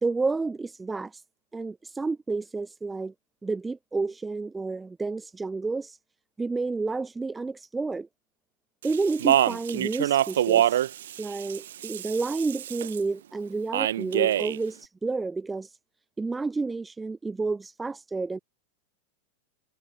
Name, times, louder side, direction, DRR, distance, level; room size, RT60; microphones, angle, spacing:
voice 1, 0.0-1.2 1.5-3.1 3.4-6.0 6.4-8.1 8.8-10.8 11.2-15.8 16.2-18.4, right 3 dB, 10° right, 0.6 m, -30 dB
Speech, 8.8-13.0 13.7-14.6, right 11 dB, 60° right, 0.8 m, -25 dB
figure-of-eight pair, 90°, 0 cm